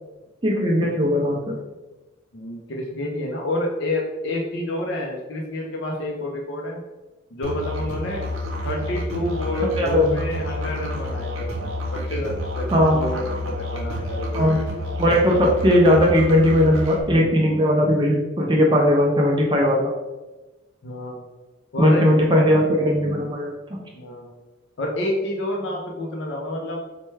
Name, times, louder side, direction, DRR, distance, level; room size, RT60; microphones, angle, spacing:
voice 1, 0.4-1.6 9.8-10.2 12.7-13.0 14.3-14.6 15.0-19.9 21.8-23.8, equal, 20° right, -1 dB, 0.4 m, -18 dB
voice 2, 2.3-6.8 7.3-8.3 8.6-14.5 20.8-21.3 21.7-22.0 23.9-24.3 24.8-26.9, left 1 dB, 60° left, -1 dB, 0.5 m, -29 dB
Musical instrument, 7.4-17.0, equal, 85° right, 0.8 m, -29 dB
4.4 x 2.2 x 3.1 m, 1.1 s
head